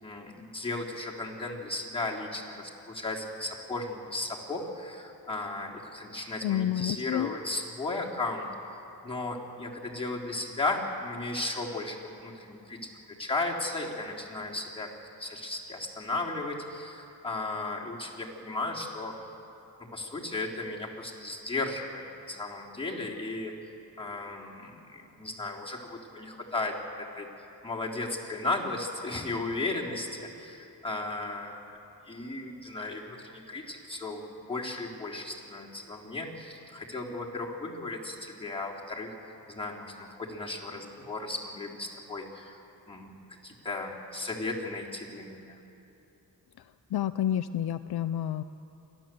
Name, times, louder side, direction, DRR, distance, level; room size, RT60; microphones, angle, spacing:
voice 1, 0.0-8.5 9.0-12.9 13.2-14.9 15.2-19.1 19.9-23.5 24.0-27.3 27.6-31.8 32.1-34.2 34.5-42.6 42.9-45.6, left 2 dB, 15° left, -3 dB, 3.6 m, -35 dB
voice 2, 6.4-7.3 46.9-48.4, left 11 dB, 65° left, 11 dB, 0.6 m, -29 dB
28.5 x 12.5 x 7.8 m, 2.9 s
cardioid pair, 85°, 41 cm